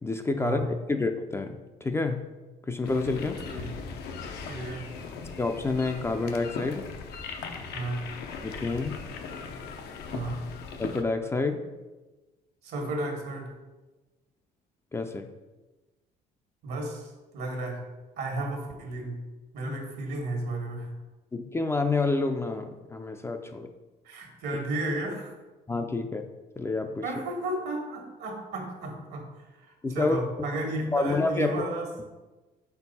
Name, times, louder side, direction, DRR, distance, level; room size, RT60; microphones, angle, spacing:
voice 1, 0.0-2.3 2.6-3.4 5.4-6.9 8.4-9.1 10.8-11.7 14.9-15.3 19.6-19.8 21.3-23.7 25.7-26.3 26.6-27.0 29.8-30.2 30.9-31.6, left 3 dB, 15° left, 6 dB, 0.4 m, -28 dB
sound 1, 2.8-11.0, left 5 dB, 75° left, 0.7 m, -39 dB
voice 2, 4.5-4.9 7.7-8.0 10.1-10.4 12.6-13.5 16.6-17.8 18.2-19.2 19.5-20.9 24.0-25.3 27.0-29.2 29.6-31.9, right 2 dB, 75° right, 2 dB, 1.4 m, -33 dB
5.2 x 4.5 x 4.1 m, 1.2 s
cardioid pair, 110°, 17 cm